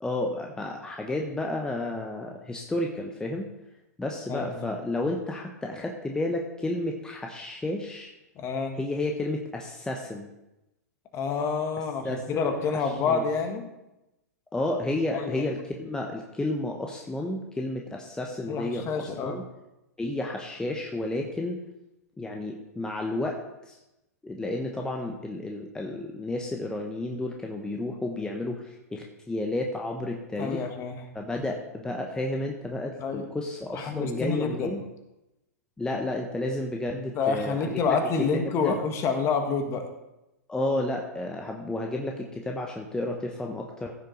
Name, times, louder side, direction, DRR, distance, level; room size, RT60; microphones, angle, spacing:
voice 1, 0.0-3.5 4.0-8.1 8.8-10.3 12.0-12.5 12.8-13.2 14.5-19.4 20.0-21.6 22.2-23.8 24.2-30.6 31.1-34.8 35.8-38.0 38.3-38.8 40.5-43.9, left 2 dB, 10° left, 1 dB, 0.9 m, -31 dB
voice 2, 4.3-4.7 8.3-8.7 11.1-13.7 15.1-15.5 18.5-19.4 30.4-31.0 33.0-33.2 33.7-34.7 37.1-39.9, left 5 dB, 30° left, 5 dB, 1.6 m, -28 dB
15.0 x 6.6 x 3.9 m, 0.94 s
hypercardioid pair, 115°, 9 cm